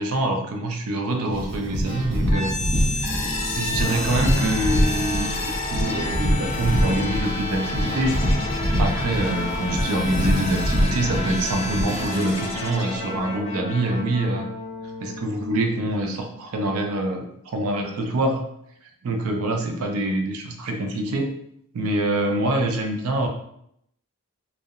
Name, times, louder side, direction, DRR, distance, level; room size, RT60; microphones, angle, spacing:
voice 1, 0.0-2.5 3.0-8.2 8.8-14.4 15.0-18.4 19.0-21.3 21.7-23.3, right 1 dB, 80° right, 3 dB, 0.4 m, -25 dB
sound 1, 1.3-12.1, equal, 30° right, 0.6 m, -25 dB
sound 2, 2.3-16.2, left 2 dB, 30° left, 0.3 m, -30 dB
2.7 x 2.0 x 2.3 m, 0.73 s
head